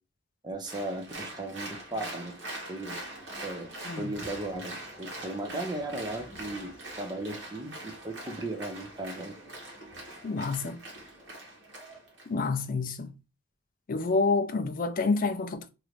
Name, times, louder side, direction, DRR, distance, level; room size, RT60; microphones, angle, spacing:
voice 1, 0.4-2.3 2.7-3.0 3.4-3.7 4.0-4.7 5.0-6.7 7.0-9.3, right 2 dB, 20° right, 0.6 m, -36 dB
Applause, 0.6-12.3, right 1 dB, 60° right, 1.4 m, -43 dB
voice 2, 10.2-10.8 12.3-13.1 13.9-15.7, left 3 dB, 45° left, 0.4 m, -28 dB
3.1 x 2.5 x 3.0 m
head